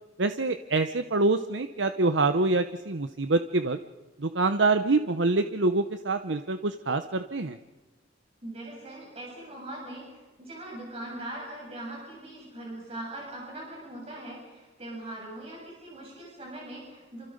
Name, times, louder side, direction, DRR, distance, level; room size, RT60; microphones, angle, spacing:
voice 1, 0.2-3.8 4.2-7.6, right 3 dB, 85° right, 9 dB, 1.0 m, -25 dB
voice 2, 8.4-17.3, right 1 dB, 35° right, -3 dB, 7.6 m, -41 dB
29.5 x 27.5 x 5.3 m, 1.2 s
head